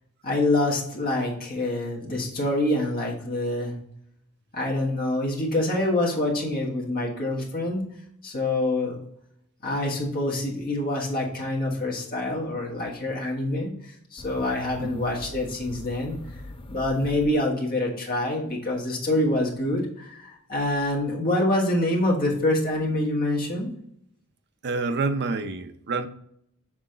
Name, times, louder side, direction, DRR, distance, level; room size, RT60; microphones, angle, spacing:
voice 1, 0.2-3.7 4.5-7.8 8.2-8.9 9.6-16.2 16.7-23.7, left 1 dB, 45° left, -2 dB, 1.5 m, -26 dB
sound 1, 14.2-17.9, left 1 dB, 25° left, 0.5 m, -42 dB
voice 2, 24.6-26.1, right 3 dB, 50° right, 9 dB, 0.5 m, -28 dB
6.2 x 4.0 x 3.8 m, 0.71 s
head